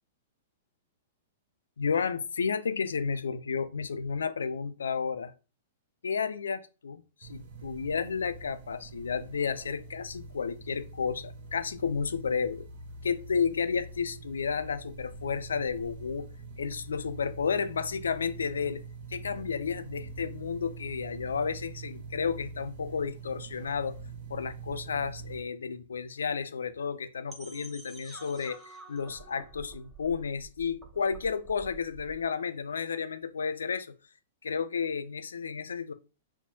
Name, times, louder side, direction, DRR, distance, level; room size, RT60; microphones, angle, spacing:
voice 1, 1.8-5.3 6.0-12.7 13.0-16.3 16.6-18.8 19.1-24.0 24.3-33.9 34.4-35.9, left 6 dB, 75° left, 0.4 m, -32 dB
sound 1, 7.2-25.4, right 4 dB, 55° right, 0.8 m, -44 dB
sound 2, 27.3-32.2, right 3 dB, 15° right, 0.9 m, -49 dB
5.5 x 2.2 x 2.7 m
figure-of-eight pair, 105°, 0 cm